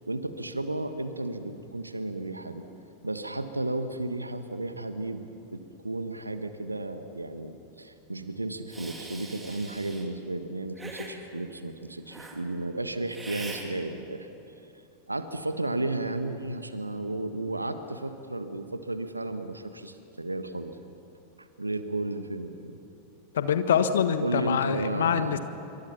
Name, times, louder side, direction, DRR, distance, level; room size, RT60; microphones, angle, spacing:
voice 1, 0.1-2.6 3.0-14.3 15.1-20.9 21.4-22.8 24.2-25.4, right 2 dB, 85° right, 10 dB, 1.4 m, -33 dB
Hiss, 8.7-10.1 10.8-11.1 12.1-12.4 13.1-13.7, right 2 dB, 10° right, 3.3 m, -42 dB
voice 2, 23.3-25.4, left 7 dB, 60° left, 10 dB, 1.4 m, -25 dB
27.0 x 24.0 x 5.9 m, 2.9 s
figure-of-eight pair, 90°, 0 cm